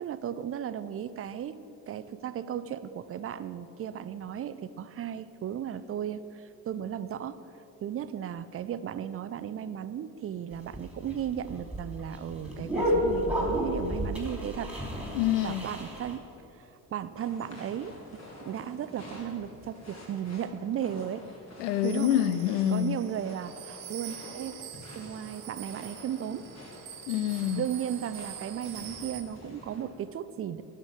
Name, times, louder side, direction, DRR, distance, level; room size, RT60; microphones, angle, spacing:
voice 1, 0.0-1.6 1.9-7.4 7.8-14.7 15.4-16.2 16.5-21.2 21.8-22.1 22.7-26.5 27.6-30.6, right 9 dB, 30° right, 0.5 m, -35 dB
sound 1, 10.5-16.2, equal, 5° right, 2.9 m, -31 dB
voice 2, 15.1-15.7 21.6-23.0 27.1-27.6, left 11 dB, 70° left, 0.6 m, -26 dB
sound 2, 17.2-29.8, left 1 dB, 30° left, 3.0 m, -48 dB
sound 3, 21.8-29.2, right 11 dB, 65° right, 1.1 m, -45 dB
9.8 x 6.7 x 8.7 m
figure-of-eight pair, 45°, 50 cm